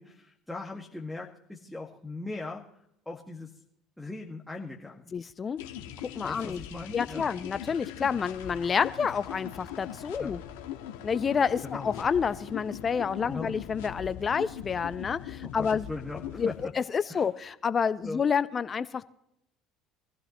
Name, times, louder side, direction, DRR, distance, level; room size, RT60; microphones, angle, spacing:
voice 1, 0.0-2.6 3.1-3.5 4.0-5.1 6.2-7.3 10.2-10.3 11.6-11.9 13.3-13.6 15.4-16.5 17.1-17.3 18.0-18.2, left 3 dB, 5° left, -2 dB, 1.9 m, -39 dB
voice 2, 5.1-5.6 6.1-6.6 6.9-10.4 11.0-15.9 16.3-19.1, left 6 dB, 35° left, 14 dB, 0.8 m, -29 dB
sound 1, 5.6-16.6, left 10 dB, 80° left, 1.6 m, -41 dB
23.5 x 15.0 x 3.1 m, 0.78 s
hypercardioid pair, 70°, 0 cm